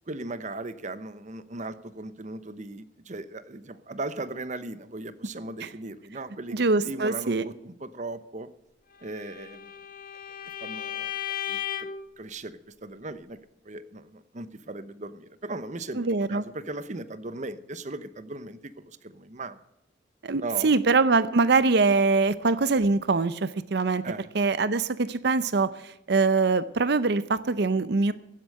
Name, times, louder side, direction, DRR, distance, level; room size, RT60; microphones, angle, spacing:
voice 1, 0.1-6.6 6.8-8.5 9.0-9.7 10.6-11.1 11.5-11.9 12.2-13.4 13.6-19.6 20.4-20.8 24.0-24.3, right 2 dB, 40° right, 13 dB, 0.9 m, -38 dB
voice 2, 6.5-7.5 16.0-16.4 20.2-24.0 24.3-28.1, right 3 dB, 65° right, 15 dB, 0.7 m, -23 dB
Bowed string instrument, 9.1-12.1, left 10 dB, 50° left, 0.9 m, -35 dB
16.0 x 8.4 x 7.7 m, 0.81 s
head